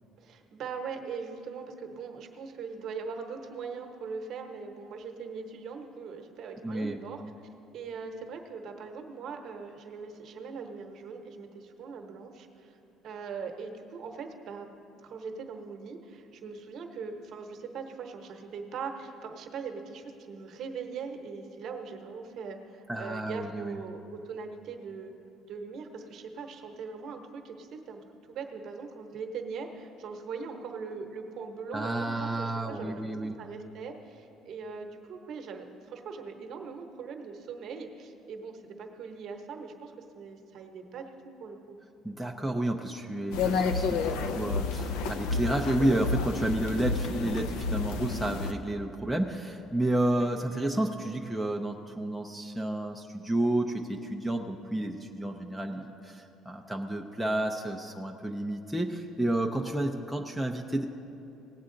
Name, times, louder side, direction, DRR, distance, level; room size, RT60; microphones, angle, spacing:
voice 1, 0.2-7.2 7.7-12.8 13.0-14.7 15.0-25.1 25.5-28.0 28.3-41.8 50.1-50.3, right 5 dB, 45° right, 4 dB, 0.9 m, -41 dB
voice 2, 6.6-7.1 22.9-23.8 31.7-33.3 42.0-60.9, right 1 dB, ahead, 0 dB, 0.4 m, -31 dB
sound 1, 43.3-48.5, left 4 dB, 90° left, 0.6 m, -30 dB
18.0 x 8.2 x 3.8 m, 2.9 s
cardioid pair, 165°, 0 cm